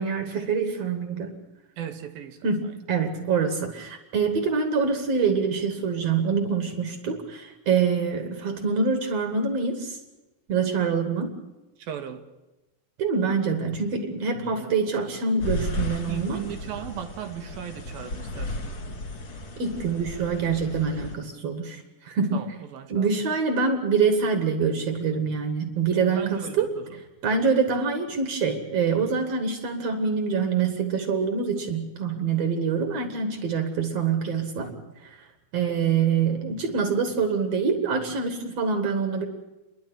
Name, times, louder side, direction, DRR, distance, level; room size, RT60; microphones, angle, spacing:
voice 1, 0.0-1.3 2.4-10.0 10.5-11.4 13.0-16.4 19.6-22.4 22.9-26.7 27.2-34.7 35.5-39.2, right 5 dB, 50° right, 2.4 m, -25 dB
voice 2, 1.8-2.7 11.8-12.2 14.5-14.7 16.1-19.0 22.3-23.2 26.2-27.0 34.6-35.0, right 9 dB, 75° right, 3.1 m, -38 dB
sound 1, 15.4-21.2, left 1 dB, 40° left, 3.0 m, -34 dB
30.0 x 11.0 x 8.7 m
omnidirectional pair, 4.3 m